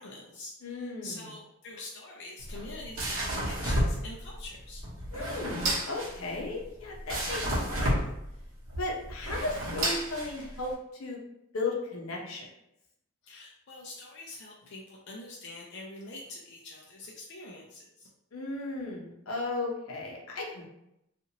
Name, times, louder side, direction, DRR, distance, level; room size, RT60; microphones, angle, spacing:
voice 1, 0.0-4.8 13.2-18.1, left 2 dB, 55° left, -3 dB, 0.4 m, -45 dB
voice 2, 0.6-1.2 5.1-7.4 7.7-8.0 8.8-11.2 11.5-12.4 18.3-20.7, left 2 dB, 85° left, -2 dB, 0.7 m, -35 dB
sound 1, 2.4-10.7, right 1 dB, 65° right, 0.8 m, -32 dB
2.8 x 2.5 x 2.8 m, 0.83 s
head